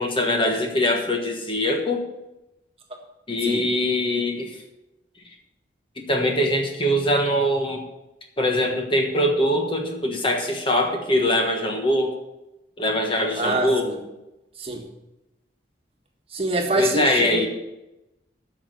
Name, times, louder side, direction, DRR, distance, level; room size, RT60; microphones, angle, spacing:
voice 1, 0.0-2.0 3.3-4.5 6.0-7.8 8.4-12.1 12.8-13.9 16.8-17.5, left 1 dB, 30° left, 3 dB, 1.3 m, -22 dB
voice 2, 13.4-14.0 14.6-14.9 16.3-17.5, right 2 dB, 30° right, 2 dB, 1.6 m, -25 dB
9.8 x 6.4 x 7.9 m, 0.94 s
head